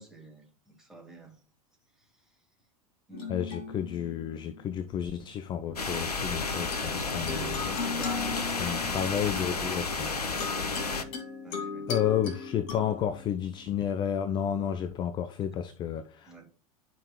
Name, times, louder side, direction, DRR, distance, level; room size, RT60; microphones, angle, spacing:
voice 1, 0.0-1.4 2.0-2.2 3.1-3.4 7.2-9.1 11.4-12.0 16.2-16.5, right 1 dB, 5° right, 2.3 m, -47 dB
sound 1, 3.1-4.9 6.3-14.8, left 5 dB, 45° left, 2.1 m, -39 dB
voice 2, 3.3-7.7 8.5-10.1 11.9-16.5, left 9 dB, 25° left, 0.4 m, -31 dB
sound 2, 5.8-11.0, left 4 dB, 85° left, 0.7 m, -32 dB
11.0 x 5.3 x 2.3 m
figure-of-eight pair, 85°, 19 cm